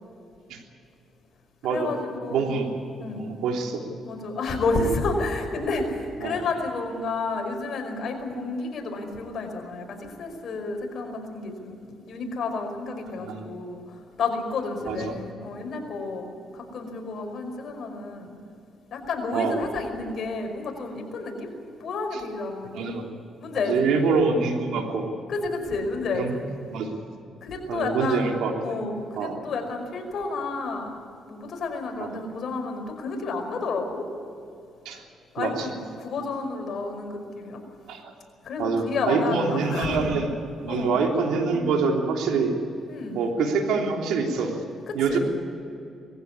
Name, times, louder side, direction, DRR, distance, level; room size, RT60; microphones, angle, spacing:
voice 1, 1.7-2.6 3.0-3.3 4.0-11.8 12.1-16.3 16.5-18.4 18.9-21.5 21.8-22.9 23.4-24.0 25.3-26.4 27.4-28.3 28.6-31.0 31.3-34.1 35.3-37.6 38.4-40.1 40.7-41.0 42.9-43.3 44.9-45.2, left 3 dB, 60° left, 3 dB, 5.3 m, -30 dB
voice 2, 2.3-2.7 3.1-3.8 6.2-6.3 13.2-13.5 14.8-15.1 19.3-19.6 22.7-23.1 23.7-25.1 26.1-26.4 26.7-27.0 27.7-28.5 29.2-29.4 32.0-32.1 34.8-35.0 35.4-35.7 37.9-38.1 38.6-40.3 40.6-42.6 43.1-44.6 44.9-45.2, right 4 dB, 85° right, 2 dB, 3.3 m, -25 dB
21.0 x 15.5 x 9.8 m, 2.7 s
cardioid pair, 90°, 0 cm